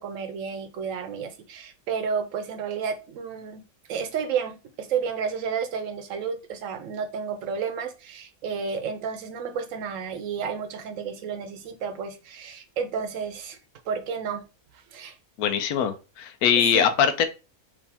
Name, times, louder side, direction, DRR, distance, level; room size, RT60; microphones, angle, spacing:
voice 1, 0.0-3.6 3.9-13.6 13.9-14.5 14.9-15.2 16.6-16.9, right 6 dB, 65° right, 1.0 m, -31 dB
voice 2, 15.4-17.2, left 8 dB, 85° left, 1.1 m, -22 dB
5.0 x 2.7 x 3.4 m
omnidirectional pair, 1.6 m